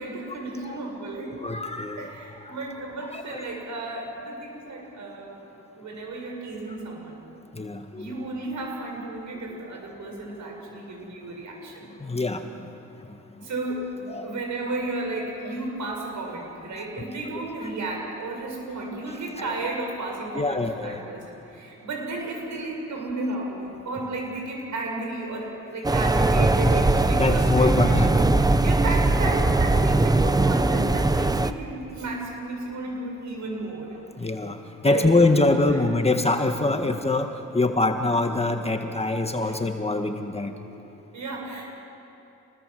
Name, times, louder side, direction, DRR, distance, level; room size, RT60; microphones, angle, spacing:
voice 1, 0.0-1.4 2.0-5.4 5.7-7.2 7.9-11.9 13.4-13.9 14.2-34.0 34.8-35.1 35.7-35.8 39.4-39.6 41.1-41.6, right 2 dB, 65° right, 0 dB, 7.7 m, -33 dB
voice 2, 1.4-2.1 2.4-2.6 3.1-3.4 7.5-8.1 12.0-12.7 14.1-14.3 16.8-16.9 17.6-17.7 19.4-19.5 20.3-21.0 26.6-26.7 27.1-28.2 34.2-40.5, left 2 dB, 20° left, 5 dB, 1.7 m, -24 dB
sound 1, 25.8-31.5, right 2 dB, 10° right, 0.9 m, -20 dB
27.5 x 20.0 x 7.9 m, 2.9 s
cardioid pair, 80°, 32 cm